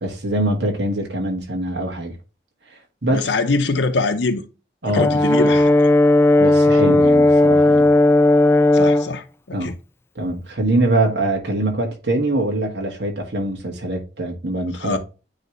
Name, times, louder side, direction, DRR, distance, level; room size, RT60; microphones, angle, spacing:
voice 1, 0.0-2.1 3.0-3.3 4.8-5.5 6.4-7.9 9.5-9.7 10.1-15.0, right 1 dB, 75° right, 1.6 m, -23 dB
voice 2, 3.1-4.4 4.9-5.9 8.7-9.8 14.7-15.0, left 3 dB, 85° left, 0.7 m, -23 dB
Brass instrument, 5.0-9.1, left 1 dB, 15° left, 0.3 m, -14 dB
9.3 x 3.3 x 3.1 m
head